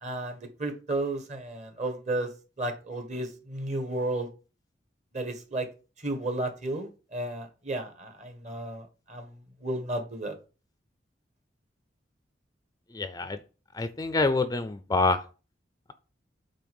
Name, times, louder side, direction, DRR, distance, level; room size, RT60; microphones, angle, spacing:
voice 1, 0.0-2.3 2.6-4.3 5.1-5.7 6.0-10.3, right 2 dB, 40° right, 6 dB, 1.5 m, -33 dB
voice 2, 12.9-13.4 13.7-15.2, left 3 dB, 20° left, 11 dB, 0.4 m, -26 dB
8.5 x 3.3 x 5.3 m, 0.34 s
head